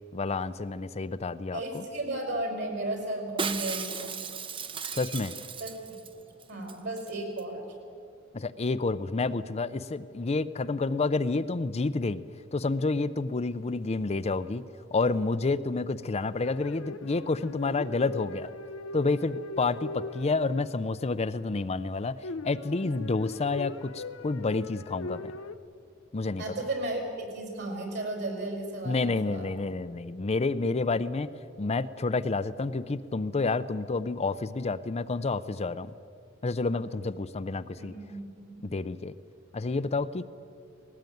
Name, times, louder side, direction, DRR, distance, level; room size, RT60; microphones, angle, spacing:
voice 1, 0.1-1.8 4.9-5.4 8.3-12.2 12.5-14.6 14.9-18.5 18.9-25.3 26.1-26.4 28.8-31.3 31.6-35.9 36.4-37.9 38.6-39.1 39.5-40.3, left 3 dB, 30° left, 12 dB, 0.5 m, -29 dB
voice 2, 1.5-4.2 5.6-6.2 6.5-7.7 26.4-29.5 37.8-38.2 38.4-38.7, right 2 dB, 60° right, 3 dB, 5.2 m, -34 dB
Shatter, 3.4-6.1 6.4-6.5 6.7-7.1 7.4-7.5, right 5 dB, 25° right, 0.8 m, -35 dB
sound 1, 16.3-20.9 22.2-25.6, left 3 dB, 75° left, 0.8 m, -40 dB
19.0 x 18.0 x 9.2 m, 2.3 s
head